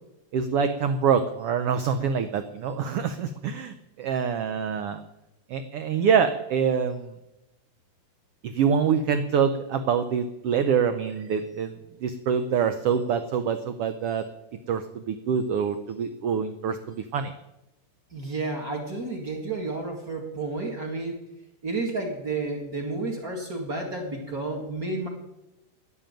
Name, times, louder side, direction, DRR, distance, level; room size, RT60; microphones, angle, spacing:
voice 1, 0.3-5.0 5.5-7.1 8.4-11.7 12.0-14.2 14.7-17.3, right 7 dB, 80° right, 9 dB, 1.3 m, -25 dB
voice 2, 18.1-21.2 21.6-25.1, right 3 dB, 30° right, 1 dB, 2.4 m, -31 dB
10.5 x 10.5 x 9.1 m, 0.91 s
omnidirectional pair, 3.7 m